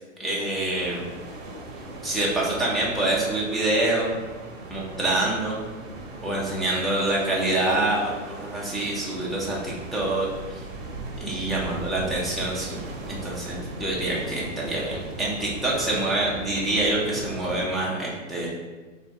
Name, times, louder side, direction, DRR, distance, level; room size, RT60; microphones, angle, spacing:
voice 1, 0.2-1.0 2.0-4.1 4.7-5.6 6.2-10.6 11.2-12.8 13.1-18.6, right 2 dB, ahead, -6 dB, 0.5 m, -26 dB
sound 1, 0.7-17.7, right 2 dB, 35° right, 1.0 m, -38 dB
3.5 x 2.6 x 3.6 m, 1.3 s
hypercardioid pair, 120°, 38 cm